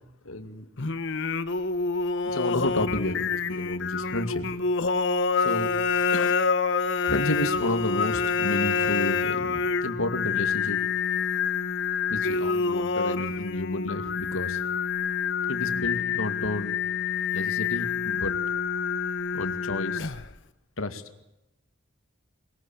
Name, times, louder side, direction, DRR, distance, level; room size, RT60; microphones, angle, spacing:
voice 1, 0.2-0.7 2.2-4.5 5.4-5.9 6.1-6.4 7.1-10.8 12.1-14.6 15.5-16.8 17.3-18.3 19.3-20.1 20.8-21.2, left 1 dB, 80° left, 9 dB, 2.3 m, -31 dB
Singing, 0.8-20.4, left 5 dB, 60° left, 1.3 m, -27 dB
22.0 x 22.0 x 8.8 m, 0.94 s
head